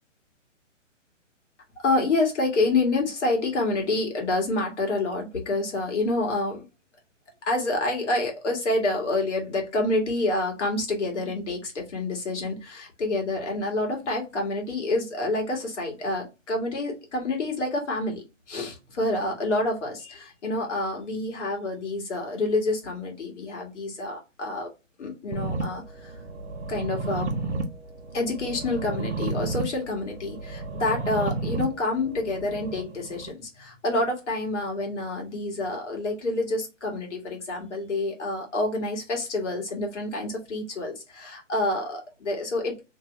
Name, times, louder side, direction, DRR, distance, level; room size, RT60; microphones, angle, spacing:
voice 1, 1.8-6.6 7.4-24.7 25.0-26.2 26.7-27.3 28.1-42.8, left 2 dB, 65° left, 1 dB, 1.6 m, -28 dB
sound 1, 25.3-33.3, right 3 dB, 60° right, 0.8 m, -32 dB
3.0 x 2.7 x 3.0 m, 0.26 s
hypercardioid pair, 155°, 38 cm